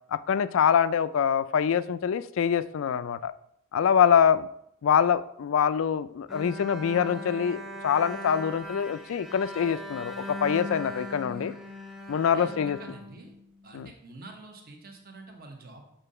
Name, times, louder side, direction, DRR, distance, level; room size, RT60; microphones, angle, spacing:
voice 1, 0.1-3.3 3.7-4.5 4.8-11.5 12.1-12.8 13.7-13.9, left 7 dB, 65° left, 15 dB, 0.3 m, -25 dB
Bowed string instrument, 6.3-13.7, equal, ahead, 0.9 m, -39 dB
voice 2, 12.2-13.3 13.6-15.9, right 2 dB, 45° right, 3 dB, 1.1 m, -47 dB
6.9 x 3.8 x 5.5 m, 0.74 s
head